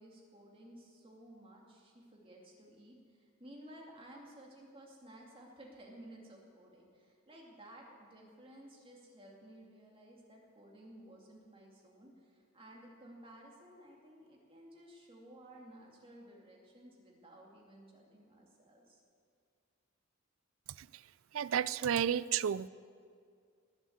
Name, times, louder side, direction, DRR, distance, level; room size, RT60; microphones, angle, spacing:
voice 1, 0.0-19.0, right 1 dB, 25° right, -2 dB, 2.4 m, -55 dB
voice 2, 21.3-22.7, right 9 dB, 70° right, 19 dB, 0.4 m, -31 dB
19.5 x 7.4 x 7.9 m, 2.2 s
head